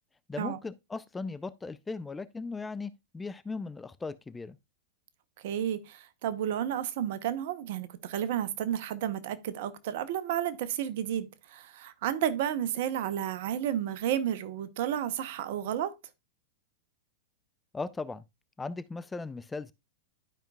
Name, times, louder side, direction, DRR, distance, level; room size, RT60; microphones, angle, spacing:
voice 1, 0.3-4.6 17.7-18.2 18.6-19.7, left 3 dB, 10° left, 0.4 m, -38 dB
voice 2, 5.4-15.9, right 10 dB, 60° right, 0.8 m, -32 dB
12.0 x 5.2 x 2.3 m
hypercardioid pair, 100°, 0 cm